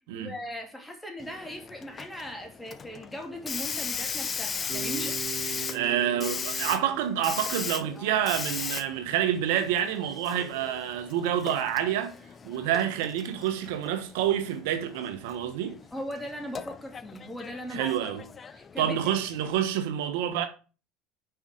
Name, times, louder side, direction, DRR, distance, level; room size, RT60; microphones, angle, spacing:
voice 1, 0.1-5.2 15.9-17.9 18.5-19.1, equal, 10° left, 2.5 m, -39 dB
Hiss, 1.2-19.6, left 6 dB, 30° left, 0.6 m, -38 dB
Bass guitar, 4.7-8.8, right 9 dB, 30° right, 2.8 m, -41 dB
voice 2, 5.7-12.1 12.4-15.8 17.7-18.2 18.8-20.5, right 10 dB, 80° right, 1.1 m, -28 dB
6.3 x 4.9 x 6.3 m
supercardioid pair, 100°, 0 cm